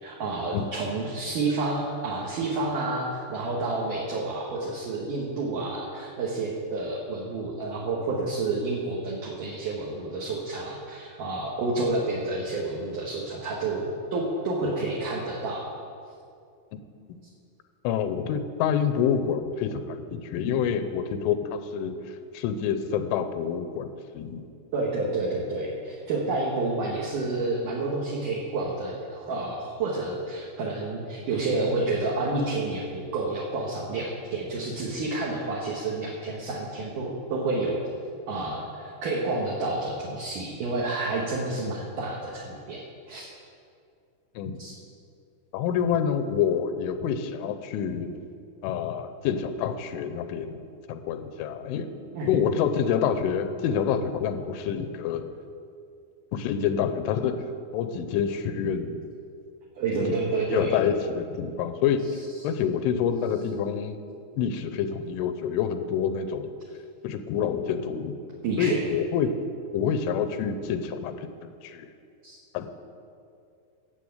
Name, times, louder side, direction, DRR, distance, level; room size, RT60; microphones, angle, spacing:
voice 1, 0.0-15.7 24.7-37.8 38.3-42.8 43.1-43.3 44.6-44.7 52.1-52.3 59.8-60.7 68.4-68.8 72.2-72.4, right 3 dB, 65° right, -4 dB, 2.3 m, -29 dB
voice 2, 17.8-23.9 24.1-24.4 44.4-44.6 45.5-48.1 48.6-50.6 50.9-51.9 52.3-55.3 56.3-57.4 57.7-59.0 59.9-60.2 60.5-62.0 62.4-64.0 64.4-66.6 67.0-68.1 68.6-69.3 69.7-71.9 72.5-72.7, left 7 dB, 85° left, 9 dB, 3.2 m, -27 dB
13.0 x 8.1 x 8.0 m, 2.4 s
omnidirectional pair, 5.5 m